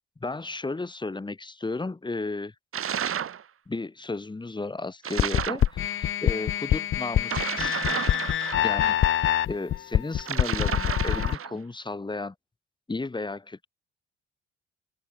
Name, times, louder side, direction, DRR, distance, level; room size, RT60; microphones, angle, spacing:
voice 1, 0.2-2.5 3.7-7.8 8.6-12.3 12.9-13.7, left 3 dB, 15° left, 0.9 m, -34 dB
sound 1, 2.7-3.4 5.0-5.7 7.2-8.9 10.2-11.6, right 8 dB, 45° right, 1.1 m, -31 dB
sound 2, 5.2-11.4, left 11 dB, 40° left, 0.5 m, -25 dB
open air
hypercardioid pair, 50°, 31 cm